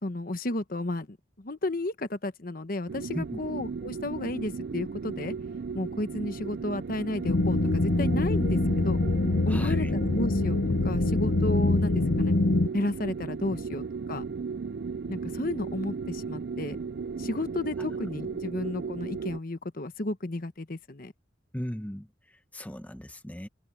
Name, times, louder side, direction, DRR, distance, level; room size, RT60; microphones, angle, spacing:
voice 1, 0.0-5.4 5.7-9.0 9.5-10.6 10.8-12.3 12.7-13.8 14.1-14.2 15.1-16.8 17.2-21.1, left 2 dB, 50° left, 1.1 m, -33 dB
sound 1, 2.9-19.4, right 5 dB, 60° right, 0.4 m, -36 dB
sound 2, 7.2-12.7, left 2 dB, 75° left, 0.8 m, -25 dB
voice 2, 9.5-9.9 13.5-13.6 21.5-23.5, equal, 10° left, 1.0 m, -37 dB
head